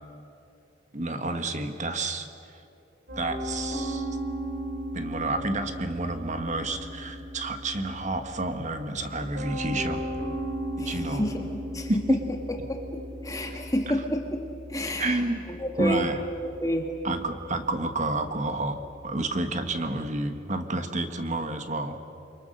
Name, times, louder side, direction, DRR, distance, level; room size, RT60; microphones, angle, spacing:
voice 1, 0.9-2.3 3.2-4.1 4.9-10.0 10.8-11.2 11.9-12.2 13.9-14.0 15.0-15.4 15.8-16.2 17.0-18.8 19.0-22.0, right 2 dB, 40° right, 7 dB, 1.4 m, -29 dB
Piano, 3.1-20.2, equal, 55° right, 4.2 m, -37 dB
voice 2, 10.8-12.2 12.7-14.4 14.7-15.2 15.6-16.1 16.4-16.9, equal, 20° left, 2 dB, 2.0 m, -30 dB
29.0 x 23.5 x 6.5 m, 2.7 s
head